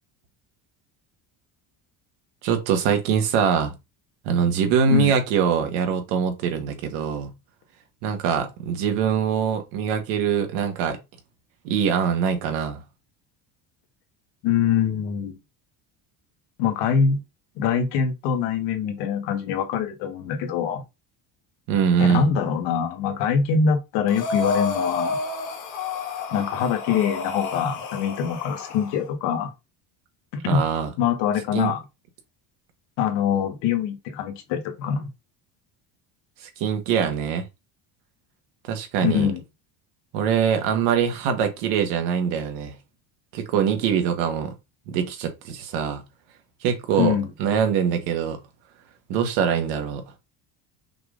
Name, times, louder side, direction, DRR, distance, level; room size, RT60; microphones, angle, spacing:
voice 1, 2.4-3.7 4.2-7.3 8.0-11.0 11.6-12.8 21.7-22.3 30.5-30.9 31.5-31.7 36.4-37.5 38.6-39.3 40.1-42.8 43.3-44.5 44.9-46.0 46.6-48.4 49.1-50.0, right 7 dB, 85° right, 1.4 m, -23 dB
voice 2, 14.4-15.4 16.6-17.2 17.6-20.8 22.0-25.2 26.3-29.5 30.3-30.6 31.0-31.8 33.0-35.1 39.0-39.4 47.0-47.3, left 7 dB, 80° left, 1.5 m, -24 dB
Breathing, 24.1-29.0, left 4 dB, 45° left, 1.3 m, -30 dB
5.7 x 3.4 x 2.5 m
cardioid pair, 140°, 42 cm